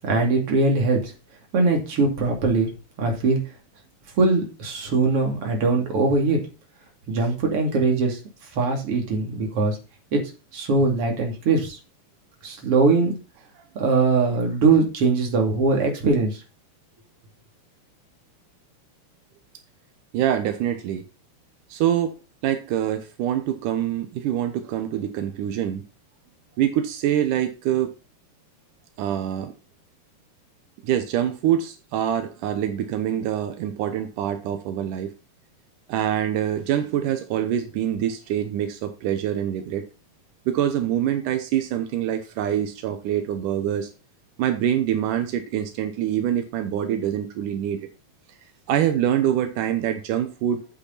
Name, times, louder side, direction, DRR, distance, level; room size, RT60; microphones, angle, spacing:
voice 1, 0.0-1.1 1.5-2.7 3.0-3.4 4.2-6.5 7.1-8.2 8.6-9.8 10.1-10.2 10.5-11.8 12.4-13.2 13.7-16.4, right 3 dB, 50° right, 2 dB, 3.4 m, -21 dB
voice 2, 20.1-21.0 21.7-22.2 22.4-25.8 26.6-27.9 29.0-29.5 30.8-35.1 35.9-39.9 40.5-43.9 44.4-47.9 48.7-50.7, right 10 dB, 85° right, 7 dB, 2.5 m, -25 dB
8.6 x 8.5 x 4.1 m, 0.31 s
omnidirectional pair, 3.6 m